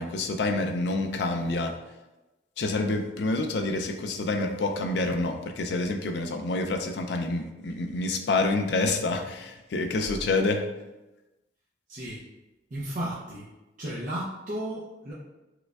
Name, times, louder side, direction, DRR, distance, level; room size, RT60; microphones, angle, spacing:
voice 1, 0.0-1.8 2.6-10.6, left 2 dB, 70° left, 5 dB, 0.4 m, -27 dB
voice 2, 11.9-12.2 12.7-13.5 13.8-15.1, right 1 dB, 45° right, -8 dB, 0.5 m, -34 dB
4.8 x 2.2 x 2.3 m, 1.0 s
head